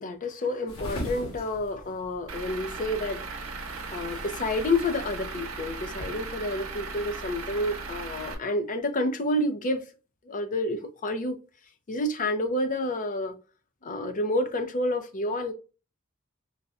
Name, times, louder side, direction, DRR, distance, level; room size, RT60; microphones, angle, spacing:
voice 1, 0.0-3.2 3.9-9.9 10.2-11.4 11.9-13.4 13.8-15.5, left 1 dB, 40° left, 0.5 m, -29 dB
sound 1, 0.7-6.3, equal, 70° left, 1.4 m, -41 dB
Truck / Idling, 2.3-8.3, right 4 dB, 70° right, 0.8 m, -37 dB
4.0 x 2.2 x 2.4 m
head